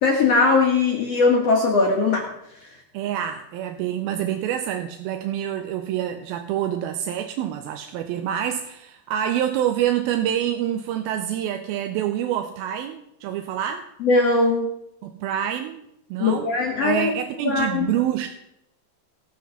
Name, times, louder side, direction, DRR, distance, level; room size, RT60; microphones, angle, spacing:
voice 1, 0.0-2.3 14.0-14.7 16.2-17.1 17.4-17.9, left 3 dB, 55° left, 0 dB, 1.8 m, -20 dB
voice 2, 2.9-13.9 15.0-15.8 16.1-16.5 16.8-18.3, right 11 dB, 80° right, 6 dB, 2.4 m, -26 dB
18.0 x 6.3 x 5.7 m, 0.81 s
omnidirectional pair, 4.6 m